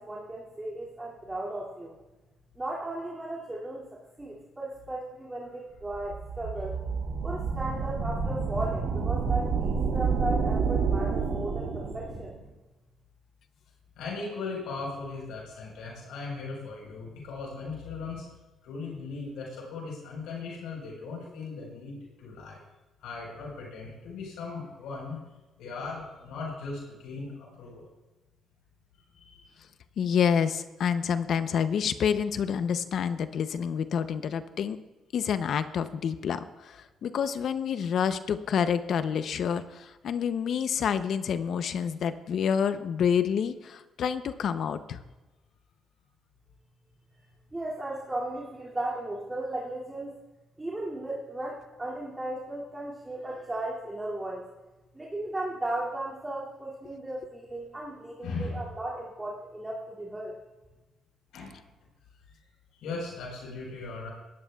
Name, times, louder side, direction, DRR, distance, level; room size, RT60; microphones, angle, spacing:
voice 1, 0.0-1.9 2.6-3.9 4.2-6.7 7.2-12.3 47.5-50.1 50.6-54.5 54.9-60.3, right 1 dB, 20° right, -6 dB, 2.4 m, -36 dB
sound 1, 5.9-12.4, right 5 dB, 75° right, 1.9 m, -29 dB
voice 2, 14.0-18.3 18.6-22.6 23.0-25.2 25.6-27.9 29.1-29.5 58.2-58.6 61.3-61.6 62.7-64.1, left 4 dB, 90° left, -2 dB, 4.3 m, -38 dB
voice 3, 30.0-34.8 35.1-45.0, left 7 dB, 65° left, 11 dB, 0.6 m, -28 dB
18.0 x 13.0 x 2.3 m, 1.1 s
cardioid pair, 90°, 0 cm